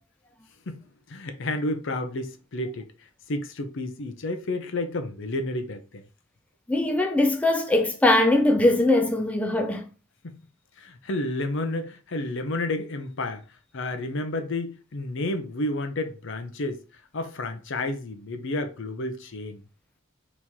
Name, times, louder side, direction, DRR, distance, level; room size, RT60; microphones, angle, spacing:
voice 1, 1.1-2.9 3.3-6.0 10.2-10.4 10.8-13.4 13.7-16.8 17.1-19.6, left 2 dB, 60° left, 0.7 m, -31 dB
voice 2, 6.7-9.9, left 1 dB, 5° left, 0.3 m, -21 dB
4.3 x 3.0 x 3.5 m
head